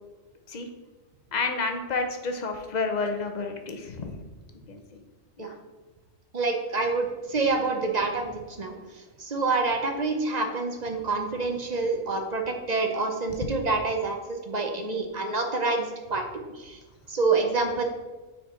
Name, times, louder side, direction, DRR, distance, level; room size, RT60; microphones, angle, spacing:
voice 1, 1.3-4.2 4.7-5.0 5.4-5.6, left 4 dB, 40° left, 5 dB, 0.7 m, -30 dB
voice 2, 6.3-8.7 9.2-16.8 17.1-17.8, right 3 dB, 40° right, 3 dB, 0.7 m, -27 dB
6.4 x 4.5 x 4.3 m, 1.2 s
omnidirectional pair, 1.4 m